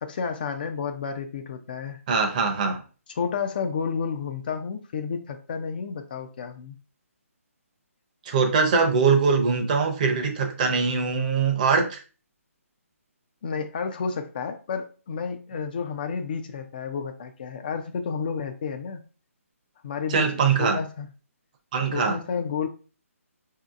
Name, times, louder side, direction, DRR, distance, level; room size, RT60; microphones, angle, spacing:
voice 1, 0.0-2.0 3.2-6.7 13.4-19.0 19.8-21.1 21.9-22.7, left 6 dB, 40° left, 7 dB, 0.4 m, -31 dB
voice 2, 2.1-2.8 8.3-12.0 20.1-20.8 21.7-22.2, right 5 dB, 30° right, 4 dB, 0.6 m, -22 dB
4.2 x 2.7 x 2.4 m, 0.36 s
hypercardioid pair, 155°, 8 cm